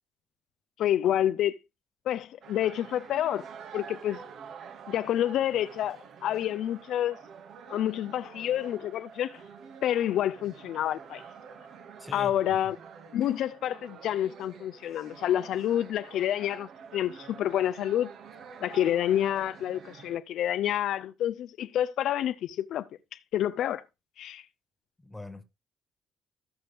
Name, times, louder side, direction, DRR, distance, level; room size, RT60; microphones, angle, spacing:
voice 1, 0.8-1.6 2.1-3.4 3.7-4.2 4.9-7.2 7.7-9.4 9.8-11.2 12.1-12.8 13.1-18.1 18.6-23.8 24.2-24.4, left 11 dB, 75° left, 0.5 m, -28 dB
sound 1, 2.4-20.2, right 6 dB, 65° right, 1.8 m, -48 dB
voice 2, 12.0-12.4 25.0-25.4, left 1 dB, 5° left, 1.7 m, -42 dB
14.5 x 6.1 x 3.4 m
cardioid pair, 130°, 0 cm